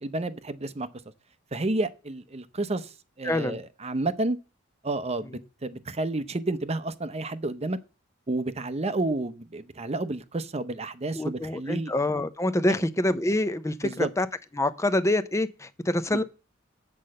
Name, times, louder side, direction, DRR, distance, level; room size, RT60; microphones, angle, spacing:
voice 1, 0.0-0.9 1.5-4.4 4.8-7.8 8.3-11.9 13.8-14.1, right 2 dB, 30° right, 0.7 m, -30 dB
voice 2, 3.2-3.6 5.3-5.4 11.1-14.3 14.5-16.2, left 1 dB, 15° left, 0.6 m, -26 dB
8.5 x 5.4 x 7.7 m
head